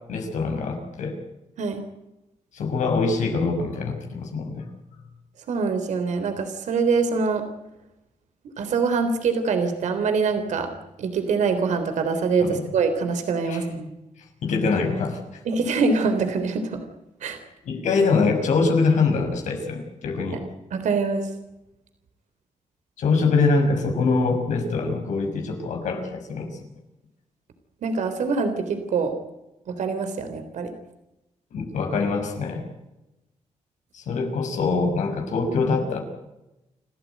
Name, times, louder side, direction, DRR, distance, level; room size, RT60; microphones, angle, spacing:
voice 1, 0.1-1.2 2.5-4.6 12.4-12.6 13.5-13.6 14.4-15.2 17.6-20.4 23.0-26.5 31.5-32.6 33.9-36.0, left 4 dB, 90° left, 3 dB, 6.2 m, -24 dB
voice 2, 5.5-7.4 8.6-10.7 11.0-13.9 15.5-16.8 17.2-17.4 20.7-21.3 27.8-29.1 29.7-30.7, right 4 dB, 85° right, 7 dB, 3.6 m, -24 dB
29.0 x 14.0 x 9.3 m, 0.95 s
cardioid pair, 80°, 12 cm